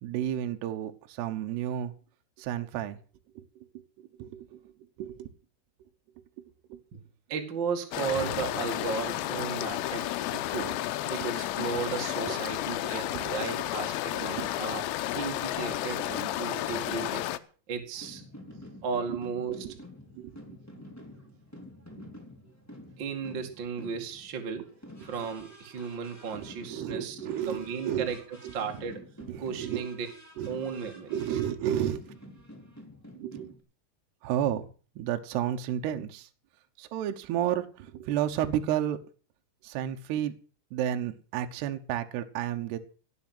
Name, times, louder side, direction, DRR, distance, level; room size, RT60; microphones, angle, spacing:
voice 1, 0.0-1.9 2.4-3.0 3.3-4.7 5.0-5.3 6.2-6.8 8.3-8.4 10.6-11.1 11.7-11.8 12.3-12.4 12.8-13.3 14.1-14.5 19.1-19.2 19.6-19.8 20.1-20.6 24.6-24.7 25.0-25.3 25.8-25.9 26.4-28.1 28.4-28.5 29.2-29.9 30.4-30.6 31.1-32.2 33.1-33.5 34.2-34.7 35.0-36.3 36.8-39.0 39.6-40.3 40.7-42.8, right 11 dB, 70° right, 6 dB, 2.7 m, -32 dB
voice 2, 7.3-10.8 11.1-17.3 17.7-18.2 18.8-19.7 23.0-24.7 25.0-28.2 28.5-29.0 29.4-30.1 30.5-31.2, right 6 dB, 45° right, 3 dB, 1.5 m, -35 dB
sound 1, 7.9-17.4, left 14 dB, 90° left, 3.6 m, -32 dB
sound 2, 17.9-33.6, left 1 dB, 5° left, 2.5 m, -49 dB
18.0 x 7.1 x 7.8 m, 0.39 s
omnidirectional pair, 6.0 m